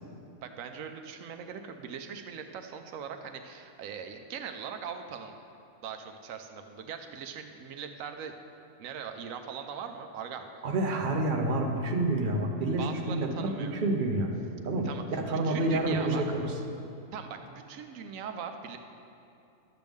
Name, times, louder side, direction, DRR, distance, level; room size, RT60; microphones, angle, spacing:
voice 1, 0.4-5.4 5.8-8.3 8.8-10.7 12.8-13.8 14.8-15.0 15.3-16.2 17.1-18.8, right 7 dB, 85° right, 6 dB, 1.0 m, -40 dB
voice 2, 10.6-14.3 14.6-16.5, right 2 dB, 45° right, 2 dB, 0.9 m, -28 dB
12.0 x 7.7 x 3.5 m, 2.7 s
omnidirectional pair, 1.4 m